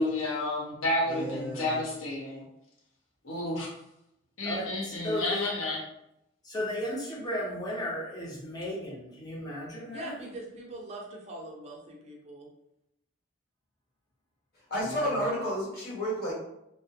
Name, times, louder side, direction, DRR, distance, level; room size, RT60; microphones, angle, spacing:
voice 1, 0.0-2.4 3.2-3.7 4.4-5.8, left 1 dB, 75° left, -2 dB, 0.7 m, -30 dB
voice 2, 1.0-1.8 14.7-16.3, equal, 45° left, -7 dB, 1.0 m, -31 dB
voice 3, 4.4-5.5 6.4-10.2 14.8-15.1, left 1 dB, 20° left, -5 dB, 0.5 m, -35 dB
voice 4, 9.9-12.5, right 1 dB, 30° right, -2 dB, 0.4 m, -42 dB
2.2 x 2.1 x 2.7 m, 0.82 s
head